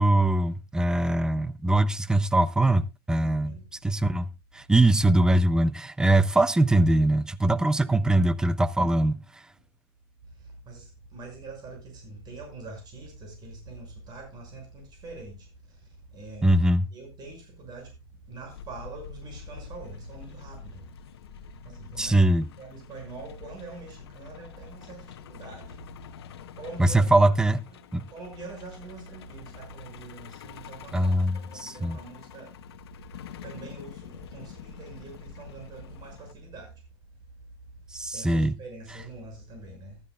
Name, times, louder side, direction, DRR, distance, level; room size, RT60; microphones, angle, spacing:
voice 1, 0.0-3.6 3.8-4.3 4.5-9.4 16.4-16.9 22.0-22.5 26.8-27.6 27.9-28.0 30.9-32.0 37.9-38.6, right 1 dB, 5° right, 0.5 m, -22 dB
voice 2, 3.2-3.7 10.3-16.5 16.9-18.0 18.3-20.9 21.6-25.8 26.3-27.2 28.1-32.6 33.4-36.8 38.1-40.0, right 2 dB, 35° right, 6.1 m, -44 dB
Truck, 18.6-36.3, left 9 dB, 90° left, 1.0 m, -47 dB
15.0 x 12.5 x 2.3 m
supercardioid pair, 125°, 13 cm